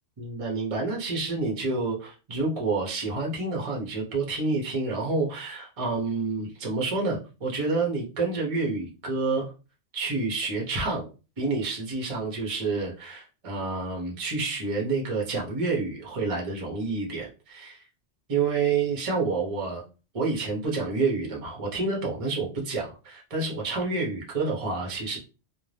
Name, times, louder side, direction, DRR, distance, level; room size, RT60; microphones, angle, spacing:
voice 1, 0.2-9.5 9.9-11.1 11.4-17.8 18.3-19.8 20.1-25.2, right 3 dB, 35° right, -1 dB, 0.7 m, -28 dB
2.5 x 2.1 x 3.2 m, 0.32 s
omnidirectional pair, 1.2 m